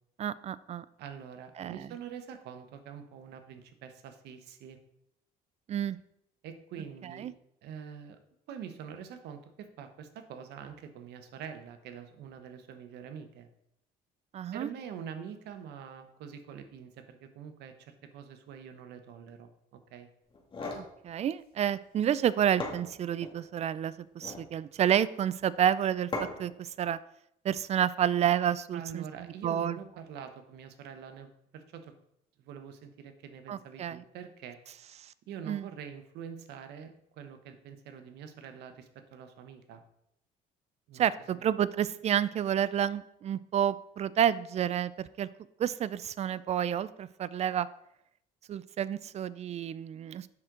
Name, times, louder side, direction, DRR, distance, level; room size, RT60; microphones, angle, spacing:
voice 1, 0.2-0.8 1.6-1.9 5.7-6.0 7.0-7.3 14.3-14.7 20.7-27.0 27.4-29.0 29.4-29.8 33.5-34.0 35.5-35.7 41.0-45.3 45.6-47.7 48.5-50.3, right 10 dB, 40° right, 18 dB, 0.4 m, -30 dB
voice 2, 1.0-4.8 6.4-7.3 7.6-8.2 8.5-13.5 14.5-20.1 28.7-31.9 32.4-34.6 35.3-39.8 40.9-41.4, right 7 dB, 80° right, 8 dB, 1.0 m, -45 dB
sound 1, 20.3-20.9 22.2-22.3 22.6-23.4 24.1-24.5 26.1-26.6, left 3 dB, 30° left, 1.9 m, -37 dB
7.6 x 6.0 x 3.8 m, 0.77 s
cardioid pair, 110°, 17 cm